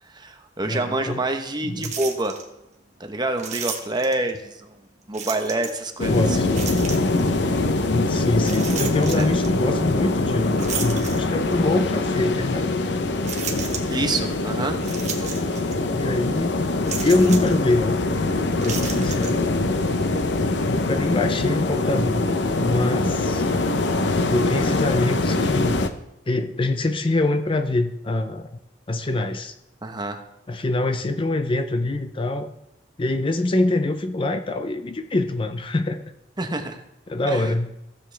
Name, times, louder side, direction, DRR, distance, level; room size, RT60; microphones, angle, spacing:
voice 1, 0.0-2.4 3.0-4.8 5.1-6.4 9.1-9.3 13.8-14.8 23.0-23.1 29.8-30.2 36.4-36.8 37.3-37.5, right 2 dB, 25° right, 5 dB, 1.0 m, -27 dB
voice 2, 0.6-1.2 1.6-1.9 6.1-6.5 7.9-12.7 15.9-16.6 17.0-18.0 18.6-19.4 20.6-22.3 22.6-23.5 24.3-25.8 26.3-28.5 28.9-29.5 30.5-32.5 33.0-36.0 37.1-37.7, left 2 dB, 30° left, 8 dB, 0.5 m, -24 dB
sound 1, 1.8-2.4 3.4-4.3 5.1-5.9 6.5-7.3 8.4-9.5 10.6-11.6 12.2-12.3 13.2-14.1 14.8-15.8 16.0-16.1 16.9-17.6 18.5-19.3, right 6 dB, 40° right, 1.3 m, -33 dB
sound 2, 6.0-25.9, left 2 dB, 70° left, 0.7 m, -23 dB
15.5 x 7.8 x 3.4 m, 0.90 s
head